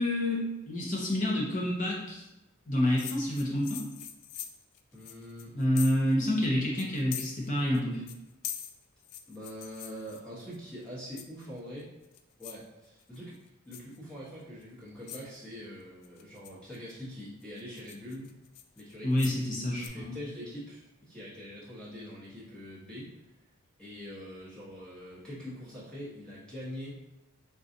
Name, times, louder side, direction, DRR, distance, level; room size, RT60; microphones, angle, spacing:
voice 1, 0.0-2.2 2.7-3.9 5.5-8.0 19.0-20.1, left 1 dB, 35° left, -3 dB, 0.6 m, -28 dB
sound 1, 3.0-6.1 6.4-6.5 6.8-7.8 8.1-10.6 11.2-11.6 12.0-12.6 13.0-13.4 13.7-14.0 14.6-14.7 15.1-15.4 16.0-16.9 17.4-19.4 19.8-19.9, left 10 dB, 85° left, 0.3 m, -43 dB
voice 2, 4.9-5.5 9.3-11.9 12.4-13.4 13.7-18.3 18.8-19.1 19.7-23.1 23.8-27.0, equal, 5° left, -9 dB, 0.8 m, -44 dB
3.7 x 2.3 x 2.6 m, 1.0 s
head